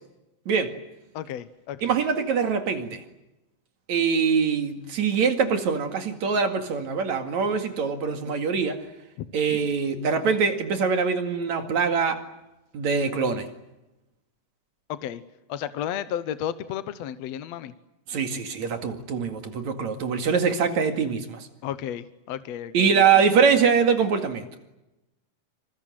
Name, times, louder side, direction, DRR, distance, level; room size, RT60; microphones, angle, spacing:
voice 1, 1.1-1.9 9.2-9.3 14.9-15.2 15.5-17.7 21.6-22.9, left 10 dB, 65° left, 1.9 m, -32 dB
voice 2, 1.8-3.0 3.9-8.8 9.3-12.2 12.7-13.5 18.1-21.5 22.7-24.5, right 6 dB, 60° right, 3.3 m, -23 dB
27.0 x 26.0 x 7.8 m
omnidirectional pair, 3.9 m